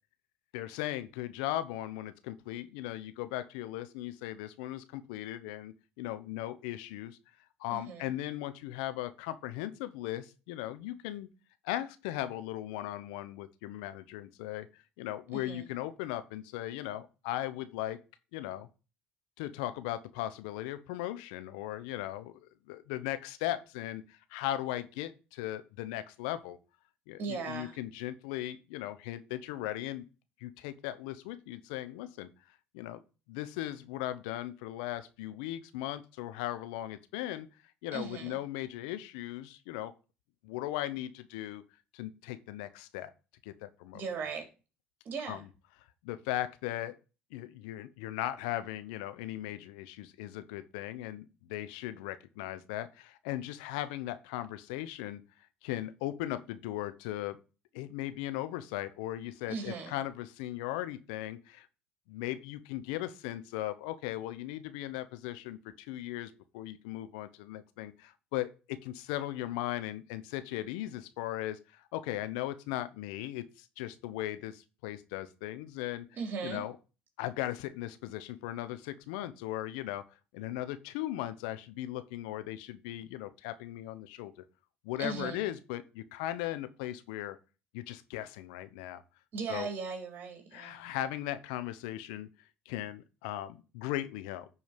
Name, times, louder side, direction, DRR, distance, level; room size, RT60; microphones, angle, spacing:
voice 1, 0.5-7.2 7.6-11.3 11.6-18.0 18.3-18.7 19.4-26.6 27.1-30.0 30.4-32.3 32.7-33.0 33.3-37.5 37.8-39.9 40.4-41.6 41.9-43.1 43.4-44.0 45.3-45.4 46.0-47.0 47.3-55.2 55.6-57.4 57.7-61.7 62.1-76.1 76.4-76.7 77.2-80.0 80.3-84.3 84.8-87.4 87.7-89.0 89.5-89.7 90.5-92.3 92.7-94.5, left 14 dB, 85° left, 0.9 m, -38 dB
voice 2, 7.7-8.1 15.3-15.7 27.2-27.8 37.9-38.4 43.9-44.5 45.0-45.5 59.5-59.9 76.1-76.6 85.0-85.4 89.3-90.8, right 5 dB, 50° right, 3.7 m, -38 dB
9.9 x 4.7 x 5.2 m
supercardioid pair, 80°, 4 cm